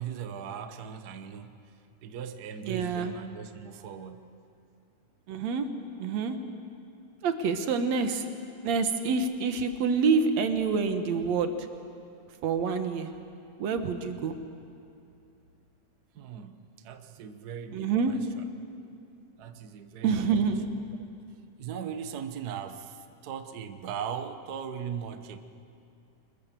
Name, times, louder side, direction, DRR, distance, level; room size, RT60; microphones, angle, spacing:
voice 1, 0.0-4.3 16.1-18.2 19.4-20.3 21.6-25.4, right 7 dB, 80° right, 8 dB, 0.8 m, -39 dB
voice 2, 2.6-3.1 5.3-5.7 6.0-6.4 7.2-8.3 8.6-11.5 12.4-13.1 13.6-14.4 17.7-18.2 20.0-20.7, right 5 dB, 65° right, 7 dB, 2.4 m, -27 dB
25.0 x 21.5 x 7.5 m, 2.6 s
omnidirectional pair, 3.5 m